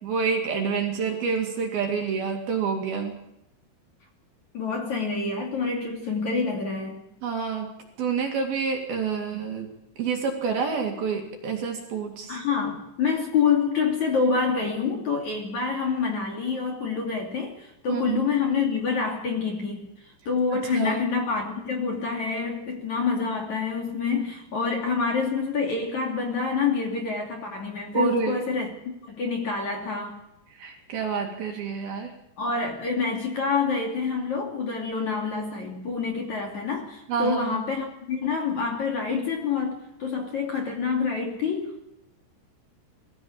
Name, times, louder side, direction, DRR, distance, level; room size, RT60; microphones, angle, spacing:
voice 1, 0.0-3.2 7.2-7.7 8.0-9.7 10.0-12.4 17.9-18.3 20.7-21.0 27.9-28.4 30.6-32.1 37.1-37.7, right 5 dB, 55° right, 2 dB, 3.6 m, -28 dB
voice 2, 4.5-7.0 12.3-28.7 29.1-30.2 32.4-41.8, left 5 dB, 45° left, 1 dB, 3.3 m, -27 dB
21.5 x 15.0 x 8.6 m, 0.87 s
omnidirectional pair, 5.9 m